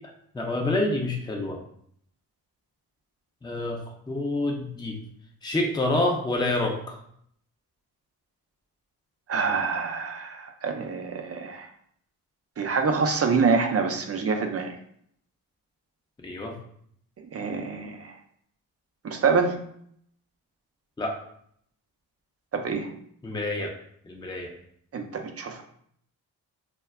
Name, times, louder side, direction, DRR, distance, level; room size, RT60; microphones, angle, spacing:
voice 1, 0.3-1.6 3.4-3.8 4.1-5.0 5.4-7.0 16.2-16.5 21.0-21.2 23.2-23.7 24.0-24.5, left 2 dB, 10° left, 1 dB, 0.6 m, -27 dB
voice 2, 9.3-11.7 12.6-14.7 17.3-18.1 19.0-19.6 22.5-22.9 24.9-25.6, right 5 dB, 40° right, 5 dB, 0.5 m, -26 dB
2.1 x 2.1 x 3.5 m, 0.67 s
supercardioid pair, 50°, 40 cm